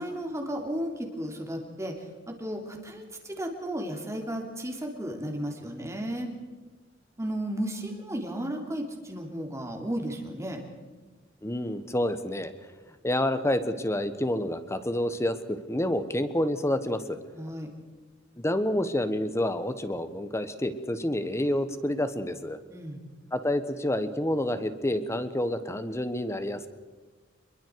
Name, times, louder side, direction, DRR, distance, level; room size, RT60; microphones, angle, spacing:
voice 1, 0.0-1.9 2.3-6.3 7.2-10.6 17.3-17.7 22.7-23.0, right 1 dB, 15° right, 2 dB, 3.2 m, -34 dB
voice 2, 11.4-12.5 13.0-17.2 18.4-22.6 23.3-26.7, left 1 dB, 15° left, 11 dB, 1.3 m, -28 dB
27.5 x 22.0 x 4.7 m, 1.3 s
head